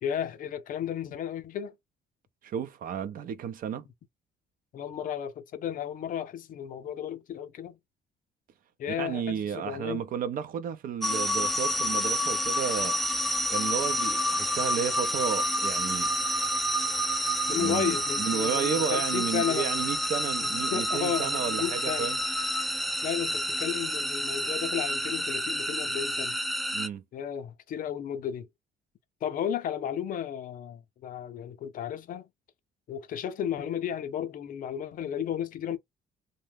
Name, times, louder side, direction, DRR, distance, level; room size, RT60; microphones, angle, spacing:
voice 1, 0.0-1.7 4.7-7.8 8.8-10.1 17.5-19.7 20.7-22.1 23.0-26.4 27.1-28.5 29.2-32.3 32.9-35.8, left 9 dB, 55° left, 0.6 m, -33 dB
voice 2, 2.4-3.8 9.0-13.0 13.2-16.1 17.5-22.2 26.7-27.0, right 8 dB, 55° right, 0.5 m, -32 dB
sound 1, 11.0-26.9, equal, ahead, 0.3 m, -29 dB
2.6 x 2.1 x 3.3 m
cardioid pair, 110°, 17 cm